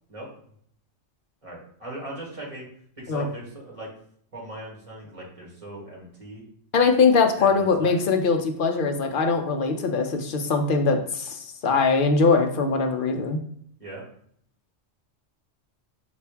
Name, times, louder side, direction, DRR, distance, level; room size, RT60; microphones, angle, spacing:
voice 1, 1.4-2.7 3.0-3.9 4.3-6.4 7.4-7.9 13.8-14.0, right 1 dB, 25° right, -4 dB, 1.6 m, -39 dB
voice 2, 6.7-13.4, left 4 dB, 55° left, 5 dB, 0.6 m, -22 dB
5.4 x 2.5 x 3.4 m, 0.64 s
omnidirectional pair, 1.3 m